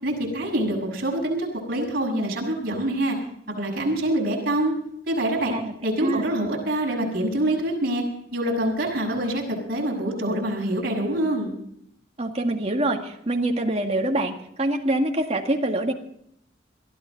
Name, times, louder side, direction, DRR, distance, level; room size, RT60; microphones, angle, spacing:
voice 1, 0.0-3.2 3.6-4.7 5.1-5.5 5.8-8.0 8.3-11.5, right 1 dB, 55° right, -1 dB, 6.6 m, -25 dB
voice 2, 12.2-15.9, right 1 dB, 35° right, 2 dB, 1.9 m, -25 dB
22.0 x 13.5 x 4.0 m, 0.73 s
head